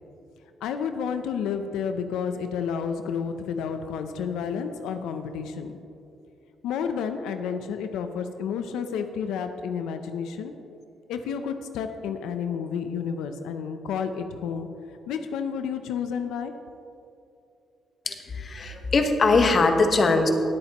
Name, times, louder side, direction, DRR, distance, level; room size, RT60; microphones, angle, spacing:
voice 1, 0.6-5.8 6.6-10.5 11.1-14.7 15.1-16.5, left 7 dB, 90° left, 7 dB, 0.6 m, -30 dB
voice 2, 18.0-20.3, left 3 dB, 40° left, 5 dB, 1.2 m, -21 dB
18.5 x 8.4 x 3.0 m, 2.7 s
cardioid pair, 90°, 0 cm